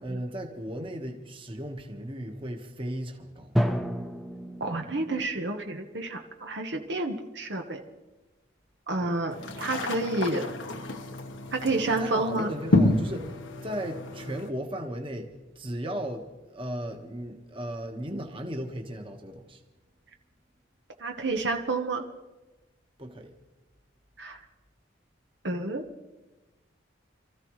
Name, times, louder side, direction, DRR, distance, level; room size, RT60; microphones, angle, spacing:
voice 1, 0.0-3.5 9.0-9.2 11.8-13.3 13.6-16.2 16.5-19.6 23.0-23.3, equal, 30° right, 3 dB, 1.5 m, -36 dB
Drum, 3.6-5.5, equal, ahead, 0.8 m, -30 dB
voice 2, 4.6-7.8 8.9-10.5 11.5-12.5 21.0-22.0 24.2-24.4 25.4-25.9, right 2 dB, 65° right, 4 dB, 1.2 m, -30 dB
sound 1, 9.3-14.5, left 2 dB, 90° left, 1.3 m, -29 dB
28.0 x 14.5 x 3.2 m, 1.1 s
head